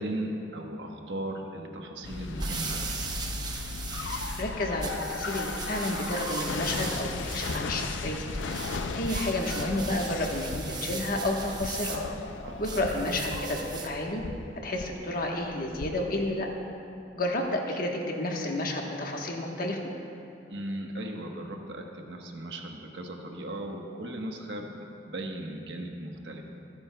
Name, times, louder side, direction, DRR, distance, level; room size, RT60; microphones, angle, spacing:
voice 1, 0.0-3.2 3.7-4.3 12.4-13.0 20.5-24.7 25.1-26.4, right 1 dB, 70° right, 2 dB, 1.2 m, -37 dB
sound 1, 2.0-16.2, left 4 dB, 85° left, 0.5 m, -37 dB
sound 2, 2.1-14.0, right 3 dB, 20° right, 0.9 m, -38 dB
voice 2, 4.4-8.2 8.9-12.0 12.6-14.2 14.6-16.5 17.1-19.8, left 1 dB, 50° left, 1 dB, 1.2 m, -31 dB
25.5 x 9.7 x 2.3 m, 2.8 s
head